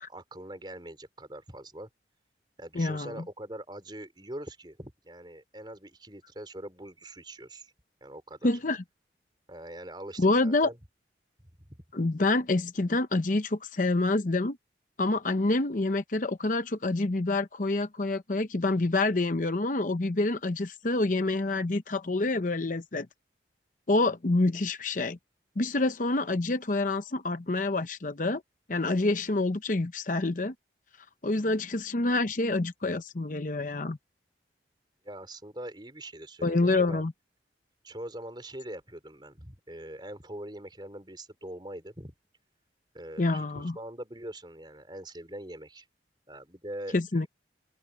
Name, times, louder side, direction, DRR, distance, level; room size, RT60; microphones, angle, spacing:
voice 1, 0.1-1.9 2.6-7.7 8.0-8.5 9.5-10.8 11.6-11.8 35.0-37.0 37.8-42.1 42.9-45.9 46.3-47.3, right 1 dB, 25° right, 4.4 m, -43 dB
voice 2, 2.7-3.2 8.4-8.8 10.2-10.7 11.9-14.6 15.0-23.1 23.9-25.2 25.6-28.4 28.7-30.5 31.2-34.0 36.4-37.1 43.2-43.8 46.9-47.3, left 2 dB, 45° left, 0.8 m, -27 dB
open air
head